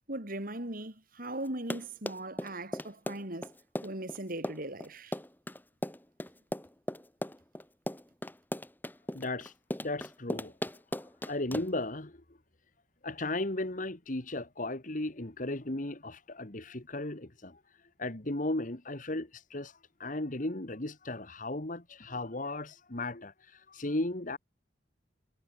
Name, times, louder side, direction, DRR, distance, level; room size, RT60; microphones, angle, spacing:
voice 1, 0.1-3.5 3.8-5.1, right 1 dB, 50° right, 4.7 m, -39 dB
Run, 1.5-11.9, left 1 dB, 10° left, 2.1 m, -37 dB
voice 2, 9.1-9.5 9.8-10.5 11.3-12.2 13.0-24.4, left 2 dB, 45° left, 2.0 m, -36 dB
head